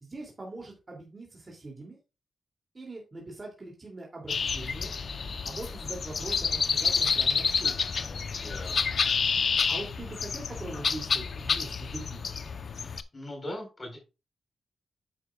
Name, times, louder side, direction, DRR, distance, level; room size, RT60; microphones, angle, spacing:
voice 1, 0.0-2.0 2.7-5.0 5.4-8.0 9.7-12.3, right 2 dB, 25° right, -1 dB, 2.8 m, -42 dB
sound 1, 4.3-13.0, left 5 dB, 55° left, 0.8 m, -29 dB
voice 2, 8.3-9.0 12.7-14.0, left 1 dB, 25° left, 3 dB, 4.5 m, -41 dB
10.0 x 9.4 x 2.4 m, 0.29 s
wide cardioid pair, 155°, 0 cm